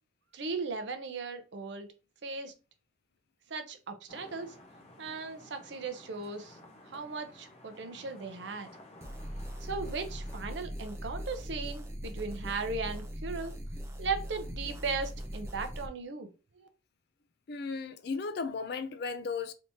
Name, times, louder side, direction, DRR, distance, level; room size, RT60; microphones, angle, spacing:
voice 1, 0.3-1.9 2.2-2.5 3.5-4.6 5.0-6.6 6.9-8.7 9.6-13.6 14.0-16.3, right 4 dB, 65° right, 0.5 m, -37 dB
sound 1, 4.1-10.4, left 1 dB, 35° left, 0.7 m, -54 dB
sound 2, 9.0-15.9, equal, 15° right, 0.5 m, -40 dB
voice 2, 17.5-19.5, left 4 dB, 55° left, 0.4 m, -35 dB
3.4 x 2.8 x 2.7 m
head